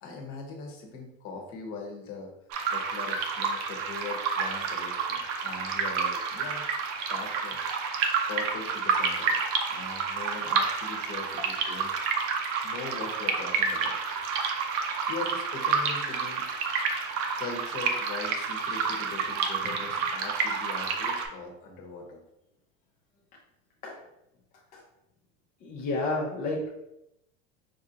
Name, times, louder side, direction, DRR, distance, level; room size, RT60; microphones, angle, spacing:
voice 1, 0.0-2.3 2.7-6.7 7.1-7.8 8.3-11.9 12.6-14.2 15.1-16.5 17.4-22.2, left 4 dB, 45° left, 1 dB, 0.9 m, -41 dB
sound 1, 2.5-21.3, right 5 dB, 45° right, 0.5 m, -29 dB
voice 2, 25.6-26.7, left 2 dB, 25° left, -2 dB, 0.4 m, -31 dB
4.5 x 2.5 x 2.8 m, 0.86 s
supercardioid pair, 150°, 32 cm